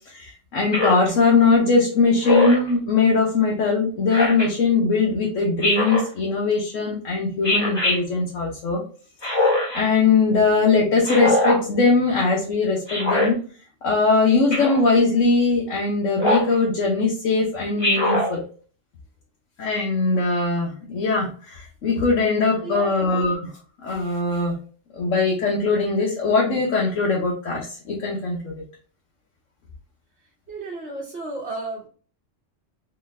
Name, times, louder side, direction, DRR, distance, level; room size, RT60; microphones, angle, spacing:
voice 1, 0.1-8.8 9.2-9.3 9.7-13.4 13.8-18.4 19.6-23.5 23.8-24.5 24.9-28.5, left 3 dB, 85° left, -3 dB, 1.3 m, -21 dB
Speech synthesizer, 0.7-1.1 2.2-2.7 4.1-4.5 5.6-6.1 7.4-8.0 9.2-9.8 11.0-11.6 12.9-13.3 14.5-14.8 16.2-16.5 17.8-18.3, left 2 dB, 20° left, 1.3 m, -21 dB
voice 2, 22.6-23.0 30.5-31.9, right 2 dB, 55° right, -5 dB, 1.1 m, -33 dB
3.9 x 3.2 x 2.5 m, 0.40 s
omnidirectional pair, 1.3 m